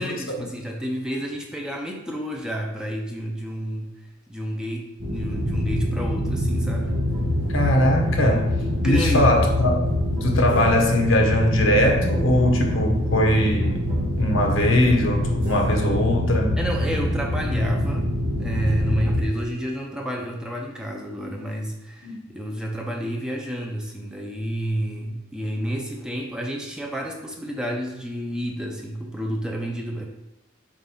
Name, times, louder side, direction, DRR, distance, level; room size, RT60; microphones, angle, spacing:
voice 1, 0.0-3.9 4.3-7.0 8.2-9.4 16.6-30.0, equal, 5° right, 0 dB, 0.7 m, -30 dB
sound 1, 5.0-19.2, left 1 dB, 85° right, 2.0 m, -25 dB
sound 2, 6.8-11.0 11.7-16.0, equal, 45° right, 1.7 m, -36 dB
voice 2, 7.5-8.5 8.8-9.8 10.2-13.8 14.2-16.6 22.0-22.2, left 1 dB, 70° left, 2 dB, 1.1 m, -21 dB
7.4 x 2.7 x 5.5 m, 0.88 s
head